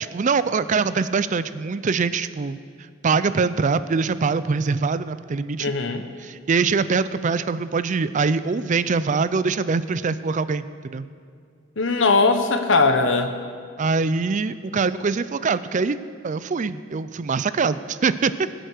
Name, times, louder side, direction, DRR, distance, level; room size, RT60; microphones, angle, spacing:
voice 1, 0.1-2.6 3.0-5.7 6.2-11.1 13.8-16.0 16.2-18.5, right 4 dB, 40° right, 14 dB, 0.4 m, -23 dB
voice 2, 5.6-6.1 11.8-13.3, left 3 dB, 70° left, 6 dB, 1.2 m, -19 dB
20.5 x 8.0 x 6.5 m, 2.2 s
head